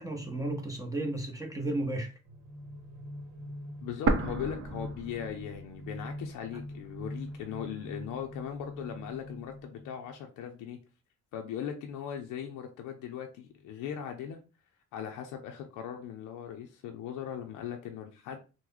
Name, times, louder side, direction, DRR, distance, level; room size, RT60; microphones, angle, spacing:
voice 1, 0.0-2.1, right 1 dB, 10° right, 0.7 m, -33 dB
sound 1, 2.2-10.2, left 1 dB, 85° right, 0.9 m, -44 dB
voice 2, 3.8-10.8 11.3-14.4 14.9-18.4, left 9 dB, 90° left, 0.6 m, -39 dB
sound 2, 4.1-6.0 6.3-6.4 7.1-8.1, right 3 dB, 45° right, 0.7 m, -32 dB
3.0 x 2.1 x 3.7 m
cardioid pair, 90°, 30 cm